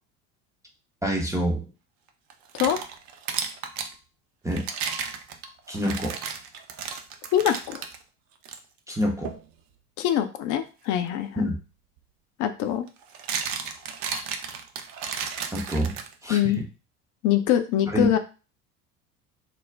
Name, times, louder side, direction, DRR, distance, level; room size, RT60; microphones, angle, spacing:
voice 1, 1.0-1.7 4.4-4.7 5.7-6.4 8.9-9.3 11.4-11.6 15.5-16.0 16.2-16.6 17.9-18.2, equal, 10° right, -1 dB, 0.5 m, -27 dB
sound 1, 2.3-3.9 4.5-8.0 8.4-8.6 9.2-9.5 11.6-11.7 12.9-16.4, right 6 dB, 50° right, 0.5 m, -33 dB
voice 2, 7.3-7.8 10.0-11.5 12.4-12.8 16.3-16.6 17.2-18.2, left 11 dB, 45° left, 9 dB, 0.5 m, -24 dB
2.4 x 2.0 x 3.2 m, 0.32 s
hypercardioid pair, 70°, 43 cm